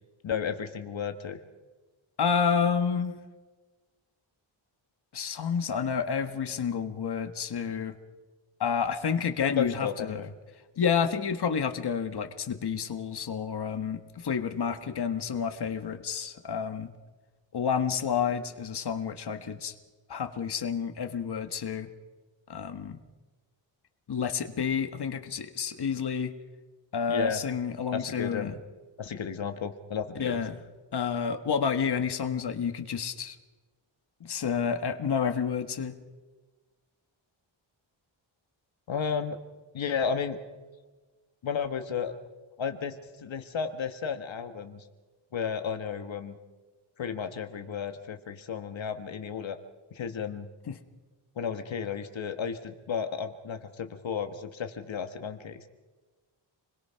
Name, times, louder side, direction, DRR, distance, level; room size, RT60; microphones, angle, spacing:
voice 1, 0.2-1.4 9.4-10.3 27.1-27.4 27.9-28.6 29.0-30.4 38.9-39.4 39.7-40.4 41.4-42.2 42.6-44.8 45.3-46.4 47.0-49.6 49.9-50.5 51.4-55.6, left 6 dB, 70° left, 7 dB, 1.5 m, -33 dB
voice 2, 2.2-3.2 5.1-7.9 8.6-10.2 10.8-16.9 17.5-19.7 20.1-21.9 22.5-23.0 24.1-26.3 26.9-28.5 30.1-30.6 30.9-33.3 34.2-36.0 50.7-50.8, left 6 dB, 55° left, 7 dB, 1.5 m, -29 dB
28.0 x 21.5 x 5.7 m, 1.3 s
wide cardioid pair, 165°, 47 cm